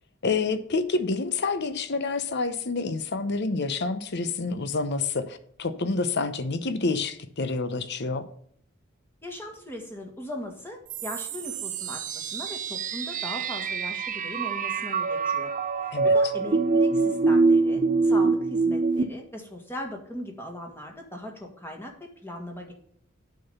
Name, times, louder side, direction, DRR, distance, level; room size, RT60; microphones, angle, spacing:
voice 1, 0.2-8.2 15.9-16.1, left 3 dB, 55° left, 11 dB, 0.9 m, -28 dB
voice 2, 9.2-15.5 16.0-22.7, left 1 dB, 10° left, 2 dB, 1.7 m, -39 dB
sound 1, 10.9-19.0, right 4 dB, 40° right, 0.6 m, -25 dB
8.4 x 5.9 x 5.5 m, 0.63 s
head